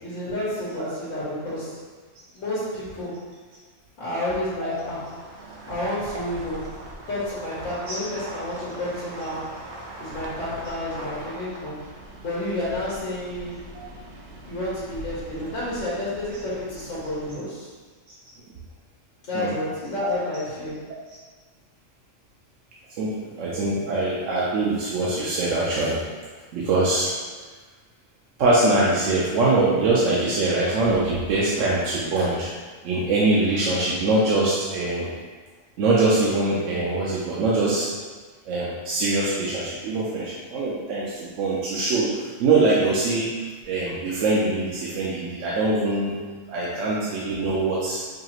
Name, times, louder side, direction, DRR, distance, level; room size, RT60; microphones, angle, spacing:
voice 1, 0.0-1.8 2.3-3.2 4.0-5.1 5.6-6.8 7.1-9.5 10.0-11.7 12.2-13.6 14.5-17.7 19.2-20.9 46.6-46.8, left 1 dB, 75° left, -8 dB, 1.3 m, -30 dB
sound 1, 4.7-17.3, right 1 dB, 55° right, 0.6 m, -41 dB
voice 2, 23.0-26.0 26.5-27.1 28.4-32.5 32.8-35.1 35.8-37.9 38.5-43.3 43.7-46.1 46.5-48.0, right 2 dB, 75° right, -6 dB, 0.9 m, -23 dB
4.8 x 2.4 x 2.9 m, 1.4 s
omnidirectional pair, 1.3 m